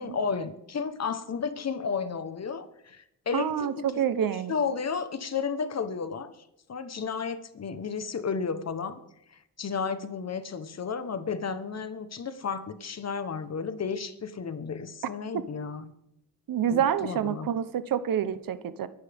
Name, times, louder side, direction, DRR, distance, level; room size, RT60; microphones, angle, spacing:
voice 1, 0.0-3.9 4.2-6.3 6.7-9.0 9.3-15.9 16.7-17.5, left 5 dB, 50° left, 11 dB, 1.2 m, -33 dB
voice 2, 3.3-4.5 15.3-15.4 16.5-18.9, right 9 dB, 75° right, 13 dB, 1.0 m, -27 dB
23.0 x 11.0 x 3.6 m, 0.82 s
cardioid pair, 95°, 34 cm